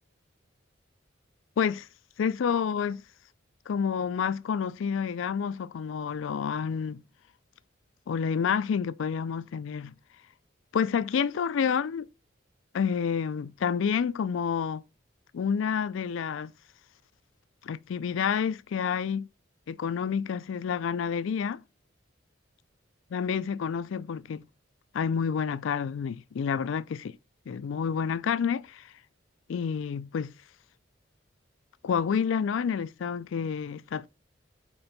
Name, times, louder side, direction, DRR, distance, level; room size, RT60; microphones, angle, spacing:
voice 1, 1.6-1.9 2.2-3.0 3.7-7.0 8.1-9.9 10.7-12.0 12.7-14.8 15.3-16.5 17.6-19.3 19.7-21.6 23.1-24.5 24.9-27.2 27.5-28.8 29.5-30.3 31.8-34.1, left 7 dB, 80° left, 0.4 m, -29 dB
4.4 x 4.3 x 5.2 m
head